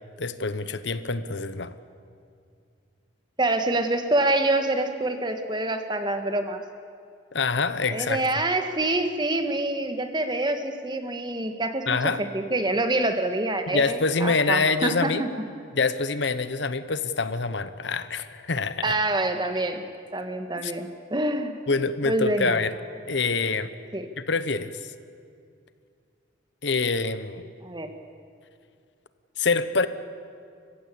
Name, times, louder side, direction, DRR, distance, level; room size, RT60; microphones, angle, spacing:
voice 1, 0.2-1.7 7.3-8.2 11.9-12.2 13.7-15.2 15.7-19.0 20.6-20.7 21.7-22.7 23.1-23.7 24.2-24.8 26.6-27.4 29.4-29.9, left 4 dB, 70° left, 13 dB, 1.0 m, -25 dB
voice 2, 3.4-6.6 7.9-15.3 18.8-19.8 20.1-21.6 22.0-22.6 23.9-24.1 27.6-27.9, right 2 dB, 25° right, 7 dB, 1.6 m, -26 dB
29.5 x 15.5 x 8.5 m, 2.3 s
head